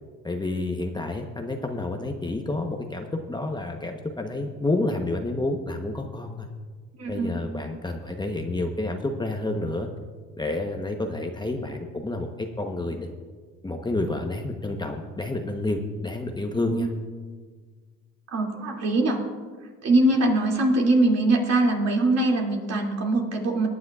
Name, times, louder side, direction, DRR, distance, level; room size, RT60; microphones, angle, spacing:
voice 1, 0.2-6.5 7.1-9.9 10.4-13.1 13.6-16.9, left 2 dB, 15° left, 3 dB, 1.0 m, -29 dB
voice 2, 7.0-7.4 16.5-16.9 18.3-19.2 19.8-23.7, right 2 dB, 50° right, 0 dB, 2.6 m, -22 dB
21.5 x 9.6 x 2.4 m, 1.5 s
supercardioid pair, 85°, 33 cm